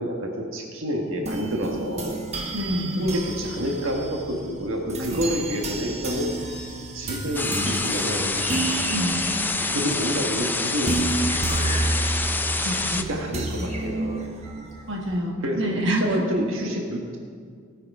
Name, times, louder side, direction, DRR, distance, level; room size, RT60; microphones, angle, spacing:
voice 1, 0.0-2.1 3.0-6.3 6.9-8.3 9.7-12.0 12.6-14.2 15.4-17.2, equal, 80° right, 0 dB, 1.5 m, -29 dB
sound 1, 1.0-15.8, right 2 dB, 35° right, 1.2 m, -31 dB
voice 2, 2.5-3.0 8.9-9.2 12.6-13.1 13.6-13.7 14.9-16.2, equal, 65° right, 0 dB, 1.6 m, -27 dB
sound 2, 7.4-13.0, left 3 dB, 10° left, 0.4 m, -27 dB
18.5 x 6.7 x 4.8 m, 2.1 s
head